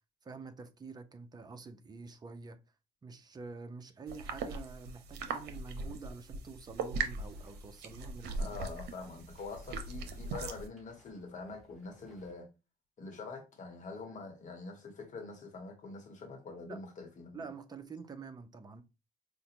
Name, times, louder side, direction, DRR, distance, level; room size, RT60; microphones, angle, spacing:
voice 1, 0.2-2.6 3.0-8.6 16.7-16.8 17.3-18.8, right 4 dB, 25° right, 0.5 m, -47 dB
sound 1, 4.1-10.7, right 4 dB, 75° right, 0.7 m, -40 dB
sound 2, 7.2-12.3, right 2 dB, ahead, 2.0 m, -63 dB
voice 2, 8.4-12.5 13.0-17.5, left 3 dB, 45° left, 1.0 m, -45 dB
4.9 x 2.1 x 2.9 m
cardioid pair, 110°, 17 cm